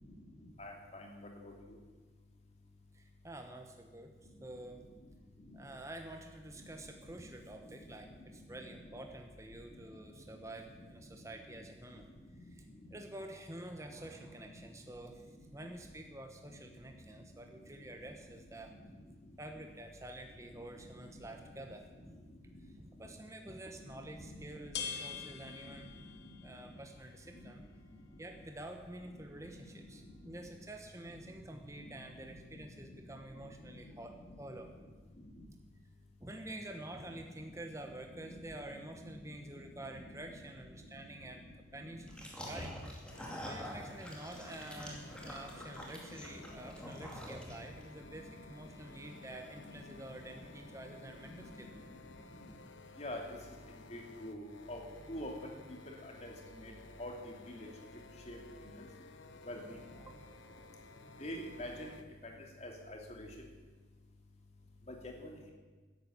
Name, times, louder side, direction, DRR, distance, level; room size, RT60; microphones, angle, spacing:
voice 1, 0.1-1.8 5.4-5.6 6.5-6.7 7.1-7.2 7.5-7.9 8.5-9.0 9.7-9.8 10.8-11.1 11.9-12.0 12.4-12.9 14.2-14.3 15.3-15.7 18.1-18.2 18.7-18.9 19.5-19.7 20.4-21.7 22.5-23.1 23.8-24.4 25.0-26.8 27.4-27.6 27.9-28.0 29.0-30.4 31.2-31.3 31.6-32.2 32.5-33.9 34.2-34.4 35.2-35.5 37.1-37.2 37.7-37.9 38.2-38.3 38.6-40.4 40.9-41.1 41.4-42.1 42.7-42.8 43.4-43.5 44.3-44.9 45.2-45.6 45.9-46.9 48.0-50.2 50.5-51.7 52.3-52.5 53.0-53.4 53.9-55.5 55.9-56.7 57.0-57.7 58.3-58.9 59.4-59.8 61.2-61.9 62.2-63.3 64.9-65.4, left 1 dB, 35° left, 1 dB, 2.7 m, -49 dB
voice 2, 2.9-4.1 4.4-4.8 5.5-12.1 12.9-15.3 15.5-18.7 19.4-22.2 22.8-25.9 26.4-27.6 28.2-34.7 36.2-41.4 41.7-42.1 42.5-42.7 43.4-51.8 60.0-61.0, right 1 dB, 15° right, 4 dB, 1.1 m, -48 dB
sound 1, 23.8-35.2, left 6 dB, 65° left, 1.3 m, -51 dB
sound 2, 42.1-47.8, equal, 5° left, 2.5 m, -46 dB
sound 3, 43.1-62.0, left 3 dB, 80° left, 1.1 m, -56 dB
14.0 x 11.0 x 8.8 m, 1.3 s
head